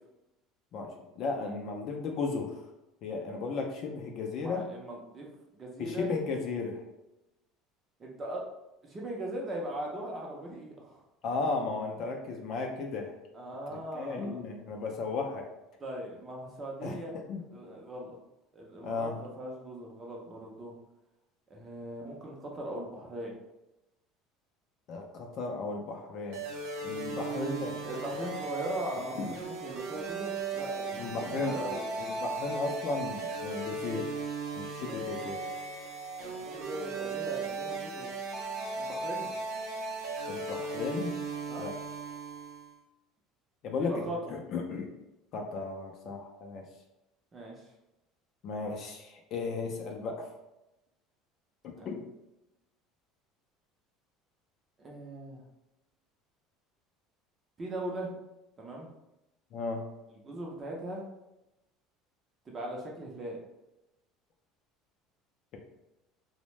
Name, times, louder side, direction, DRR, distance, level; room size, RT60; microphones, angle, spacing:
voice 1, 0.7-2.6 3.0-4.7 5.8-6.8 11.2-13.1 13.7-15.5 16.8-17.4 18.8-19.2 24.9-26.4 26.8-27.7 29.1-29.3 30.9-34.1 34.5-35.4 40.3-41.1 41.6-41.7 43.6-44.9 45.3-46.6 48.4-50.3 51.6-52.0 59.5-59.8, left 4 dB, 45° left, 2 dB, 0.4 m, -35 dB
voice 2, 4.4-5.3 5.5-6.1 8.0-8.4 8.8-11.0 13.3-14.4 15.8-17.2 17.5-18.2 18.5-20.7 21.5-23.3 26.9-31.9 36.2-38.1 38.8-39.3 41.5-41.6 43.8-44.3 47.3-47.7 51.8-51.9 54.8-55.4 57.6-58.1 58.6-58.9 60.2-61.0 62.5-63.4, right 1 dB, 20° right, -2 dB, 0.6 m, -39 dB
sound 1, 26.3-42.7, right 3 dB, 70° right, 0.5 m, -37 dB
2.6 x 2.1 x 3.1 m, 0.92 s
cardioid pair, 155°, 0 cm